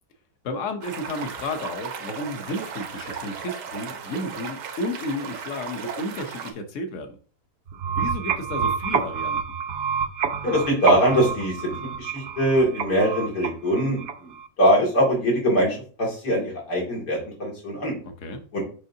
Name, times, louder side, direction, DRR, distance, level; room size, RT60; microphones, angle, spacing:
voice 1, 0.4-7.2 7.9-9.5 18.0-18.4, left 1 dB, 55° left, 6 dB, 1.2 m, -32 dB
sound 1, 0.8-6.5, right 6 dB, 90° right, 1.4 m, -36 dB
sound 2, 7.7-14.5, right 6 dB, 65° right, 0.6 m, -28 dB
voice 2, 10.4-11.7 12.0-14.3 14.6-17.9 18.5-18.7, equal, 90° left, -2 dB, 3.0 m, -22 dB
6.5 x 5.4 x 2.7 m, 0.40 s
omnidirectional pair, 1.7 m